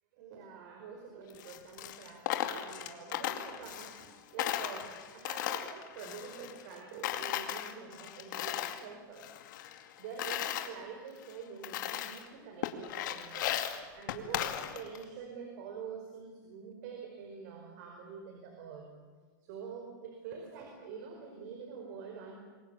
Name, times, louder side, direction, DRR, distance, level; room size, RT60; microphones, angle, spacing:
voice 1, 0.2-9.3 9.8-13.5 13.9-18.9 19.4-22.4, right 6 dB, 60° right, 3 dB, 5.1 m, -46 dB
Coin (dropping), 1.3-4.1 4.4-6.8 7.0-8.8 9.2-10.7 11.2-11.3 11.6-12.3 12.6-15.0, left 12 dB, 70° left, 2.4 m, -36 dB
27.5 x 22.5 x 7.2 m, 1.4 s
supercardioid pair, 150°, 11 cm